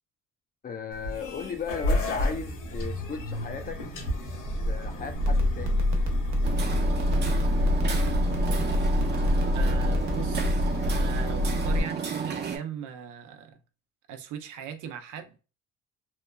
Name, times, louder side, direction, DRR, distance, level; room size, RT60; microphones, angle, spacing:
voice 1, 0.6-3.9 4.5-5.8, left 6 dB, 30° left, 0.4 m, -36 dB
sound 1, 0.9-11.8, left 1 dB, 80° left, 1.1 m, -27 dB
sound 2, 5.1-10.5, right 5 dB, 65° right, 0.8 m, -35 dB
Hammer, 6.4-12.6, right 6 dB, 35° right, 0.6 m, -33 dB
voice 2, 9.5-13.6 14.1-15.4, right 8 dB, 90° right, 0.5 m, -39 dB
2.9 x 2.3 x 2.2 m
cardioid pair, 90°, 30 cm